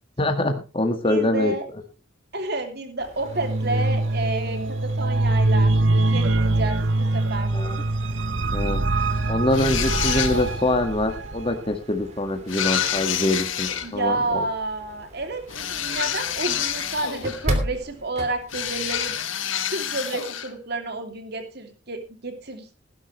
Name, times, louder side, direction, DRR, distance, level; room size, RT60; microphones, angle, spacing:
voice 1, 0.2-1.5 7.5-7.8 8.5-8.8 9.3-14.5, left 1 dB, 30° left, 6 dB, 2.0 m, -24 dB
voice 2, 1.0-1.6 2.3-5.7 6.1-7.5 13.8-22.7, right 2 dB, 55° right, 6 dB, 3.1 m, -30 dB
sound 1, 3.0-19.2, equal, 35° right, 3.0 m, -38 dB
sound 2, 3.3-11.6, right 2 dB, 75° right, 1.0 m, -23 dB
sound 3, 9.5-10.7 12.5-13.9 15.5-17.5 18.5-20.5, left 9 dB, 90° left, 1.7 m, -28 dB
18.5 x 11.0 x 3.3 m, 0.30 s
head